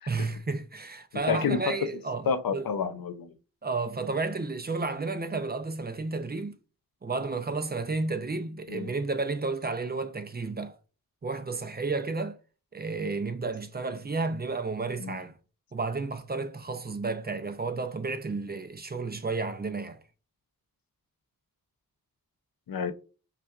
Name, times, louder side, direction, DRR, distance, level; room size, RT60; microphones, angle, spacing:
voice 1, 0.1-2.6 3.6-6.6 7.0-10.8 11.2-12.4 12.7-15.4 15.7-20.0, right 3 dB, 30° right, 0.5 m, -32 dB
voice 2, 1.1-1.7 2.3-3.3 8.7-8.9 15.0-15.2 22.7-22.9, left 6 dB, 80° left, 0.6 m, -30 dB
5.5 x 2.3 x 2.4 m
wide cardioid pair, 90°, 35 cm